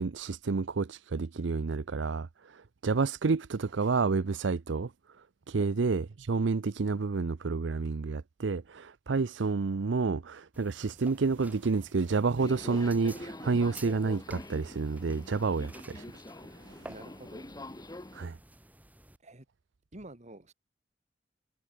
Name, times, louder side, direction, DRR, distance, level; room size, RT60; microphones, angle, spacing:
voice 1, 0.0-4.9 5.5-16.0 18.1-18.3, right 4 dB, 70° right, 0.6 m, -29 dB
sound 1, 10.5-19.2, right 1 dB, 10° right, 2.7 m, -53 dB
Subway metro underground, 12.4-18.3, left 1 dB, 20° left, 1.3 m, -45 dB
voice 2, 16.8-17.5 19.2-19.5 19.9-20.5, right 1 dB, 40° right, 2.8 m, -48 dB
head